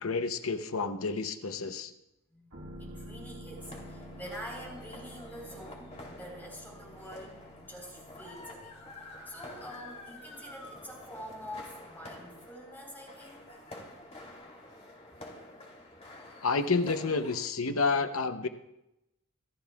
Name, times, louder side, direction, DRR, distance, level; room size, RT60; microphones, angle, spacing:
voice 1, 0.0-1.9 16.4-18.5, left 4 dB, 75° left, 8 dB, 0.8 m, -29 dB
sound 1, 2.5-14.1 14.4-14.5, equal, 85° right, 2.1 m, -51 dB
voice 2, 2.8-8.7 9.3-13.6, equal, 10° left, -2 dB, 4.2 m, -46 dB
sound 2, 3.6-17.5, left 1 dB, 30° left, 3.1 m, -49 dB
27.0 x 14.0 x 2.4 m, 0.88 s
head